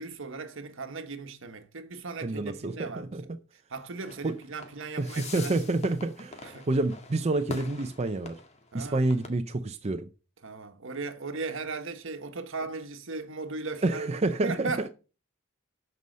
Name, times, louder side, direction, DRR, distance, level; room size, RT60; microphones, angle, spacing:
voice 1, 0.0-5.6 6.4-6.7 8.7-9.1 10.4-14.9, right 3 dB, 65° right, 1.4 m, -37 dB
voice 2, 2.2-3.4 4.2-4.4 5.0-8.4 8.7-10.1 13.8-14.9, right 2 dB, 30° right, 0.6 m, -28 dB
sound 1, 4.0-9.3, left 2 dB, 35° left, 1.9 m, -44 dB
12.5 x 5.5 x 5.4 m
head